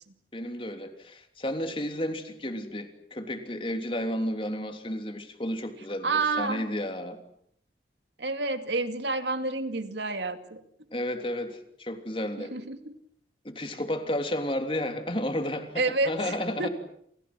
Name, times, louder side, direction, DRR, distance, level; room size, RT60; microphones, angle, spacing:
voice 1, 0.3-7.2 10.9-12.5 13.4-16.7, left 1 dB, 30° left, 6 dB, 3.2 m, -32 dB
voice 2, 6.0-6.6 8.2-10.6 12.4-13.0 15.8-16.7, right 3 dB, 70° right, 8 dB, 2.4 m, -29 dB
29.5 x 29.0 x 6.2 m, 0.69 s
head